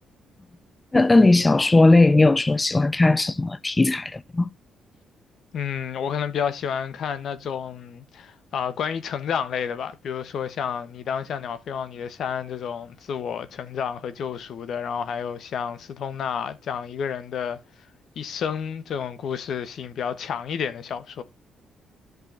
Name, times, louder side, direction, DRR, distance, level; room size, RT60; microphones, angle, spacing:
voice 1, 0.9-4.5, left 2 dB, 20° left, 0.4 m, -18 dB
voice 2, 5.5-17.6 18.1-21.2, left 7 dB, 65° left, 1.2 m, -30 dB
10.5 x 5.5 x 3.9 m
cardioid pair, 90°, 0 cm